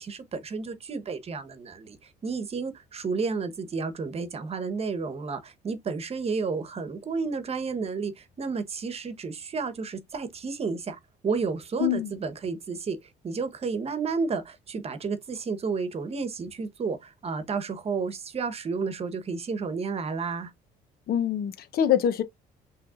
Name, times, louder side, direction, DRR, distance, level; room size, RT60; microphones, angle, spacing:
voice 1, 0.0-20.5, right 4 dB, 35° right, 1.1 m, -31 dB
voice 2, 11.8-12.1 21.1-22.2, left 9 dB, 65° left, 0.9 m, -24 dB
5.8 x 3.3 x 2.4 m
cardioid pair, 110°, 17 cm